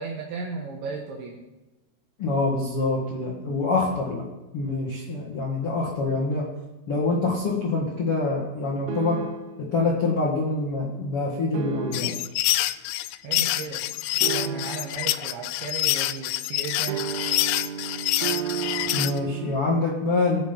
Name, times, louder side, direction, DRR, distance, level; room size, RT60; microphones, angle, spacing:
voice 1, 0.0-1.4 13.2-13.9 14.1-17.1, right 5 dB, 70° right, -1 dB, 3.4 m, -35 dB
voice 2, 2.2-4.2 4.5-6.5 6.9-9.2 9.6-12.1 18.9-20.4, left 3 dB, 65° left, -4 dB, 1.3 m, -25 dB
sound 1, 8.9-9.7 11.5-12.4 14.2-15.1 16.9-19.6, right 8 dB, 90° right, 4.0 m, -32 dB
sound 2, 11.9-19.2, left 15 dB, 90° left, 2.6 m, -26 dB
20.0 x 7.6 x 5.4 m, 1.0 s
omnidirectional pair, 5.9 m